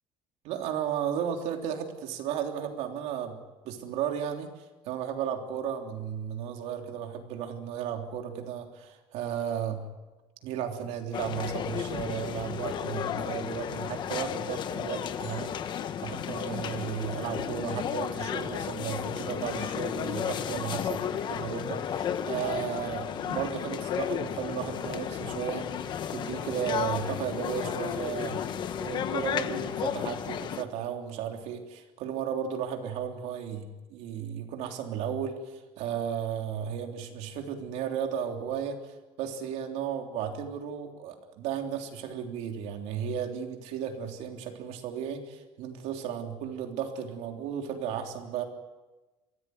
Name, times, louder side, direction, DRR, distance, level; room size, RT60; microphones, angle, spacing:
voice 1, 0.4-3.4 3.6-4.5 4.8-9.9 10.4-15.5 16.0-25.7 26.1-48.4, right 8 dB, 75° right, 3 dB, 3.4 m, -34 dB
sound 1, 11.1-30.6, left 9 dB, 40° left, 1.1 m, -33 dB
23.0 x 16.0 x 9.5 m, 1.2 s
cardioid pair, 175°, 12 cm